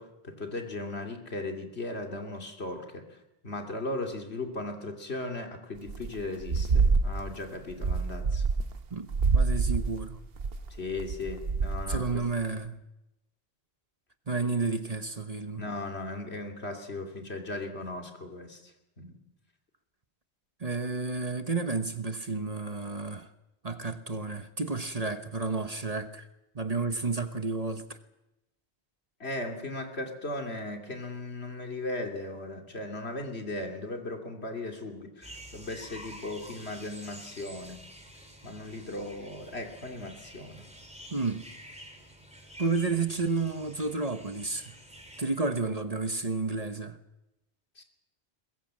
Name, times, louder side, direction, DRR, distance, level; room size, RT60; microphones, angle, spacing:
voice 1, 0.0-3.2 3.4-8.4 10.7-12.2 15.6-19.2 29.2-37.8 38.4-40.7 47.8-47.9, left 2 dB, 70° left, 2.9 m, -37 dB
sound 1, 5.9-6.1 6.4-7.4 7.7-8.8 9.1-12.3, right 4 dB, 60° right, 1.2 m, -27 dB
voice 2, 9.3-10.2 11.9-12.8 14.3-15.7 20.6-23.3 23.6-26.3 26.5-28.0 41.1-41.4 42.6-44.7 45.2-47.0, right 4 dB, 35° right, 1.1 m, -31 dB
sound 2, 35.2-45.2, equal, 5° right, 3.7 m, -49 dB
22.0 x 21.0 x 7.6 m
omnidirectional pair, 1.1 m